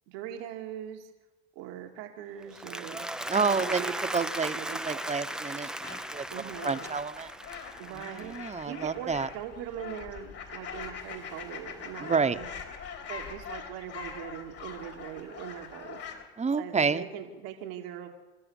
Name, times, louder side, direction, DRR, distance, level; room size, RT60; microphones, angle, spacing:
voice 1, 0.1-1.1 1.6-3.1 3.4-5.0 6.3-6.9 7.8-8.3 8.6-12.5 13.1-16.3 16.6-18.1, right 10 dB, 90° right, 3 dB, 2.3 m, -41 dB
Applause, 2.4-8.7, right 1 dB, ahead, 0.6 m, -37 dB
voice 2, 3.3-6.2 6.6-7.3 7.9-9.3 12.0-12.4 16.4-17.0, right 5 dB, 25° right, 11 dB, 1.1 m, -29 dB
sound 1, 5.8-16.3, left 6 dB, 55° left, 3.8 m, -43 dB
29.0 x 13.0 x 7.3 m, 1.2 s
supercardioid pair, 90°, 29 cm